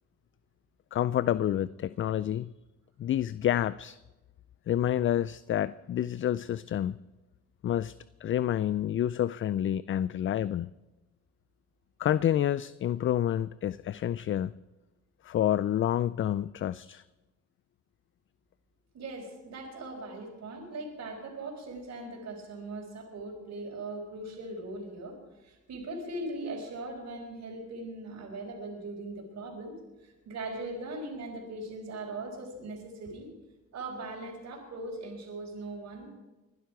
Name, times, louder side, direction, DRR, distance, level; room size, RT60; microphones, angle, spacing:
voice 1, 0.9-2.5 3.0-4.0 4.7-7.0 7.6-7.9 8.2-10.7 12.0-14.5 15.2-17.0, left 11 dB, 45° left, 17 dB, 0.4 m, -28 dB
voice 2, 18.9-25.2 25.4-29.8 30.0-33.3 33.7-36.1, right 2 dB, 60° right, -3 dB, 4.2 m, -40 dB
22.5 x 11.5 x 4.8 m, 1.1 s
cardioid pair, 90°, 30 cm